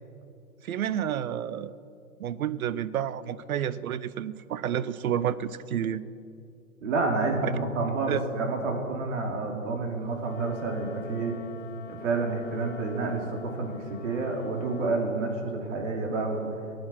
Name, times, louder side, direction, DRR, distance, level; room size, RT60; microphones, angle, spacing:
voice 1, 0.6-1.7 2.2-6.0 7.4-7.5 8.1-8.3, right 10 dB, 70° right, 17 dB, 0.8 m, -30 dB
voice 2, 6.8-11.3 11.9-16.5, right 3 dB, 55° right, 2 dB, 3.0 m, -29 dB
Wind instrument woodwind instrument, 10.2-15.0, left 6 dB, 45° left, 1.4 m, -45 dB
19.5 x 9.3 x 6.0 m, 2.5 s
hypercardioid pair, 145°, 44 cm